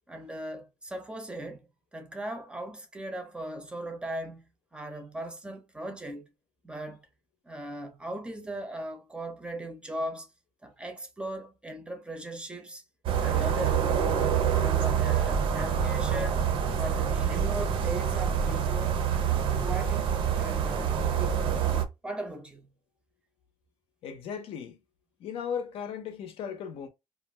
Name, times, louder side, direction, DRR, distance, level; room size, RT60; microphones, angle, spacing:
voice 1, 0.1-4.4 4.7-6.3 6.6-7.1 7.4-10.3 10.6-12.8 13.2-14.2 14.5-16.4 16.8-20.1 20.4-22.7, right 1 dB, 10° right, 0.5 m, -38 dB
sound 1, 13.0-21.8, right 8 dB, 70° right, 0.6 m, -26 dB
voice 2, 24.0-24.8 25.2-26.9, left 7 dB, 80° left, 0.6 m, -36 dB
2.4 x 2.2 x 3.2 m
cardioid pair, 175°, 10 cm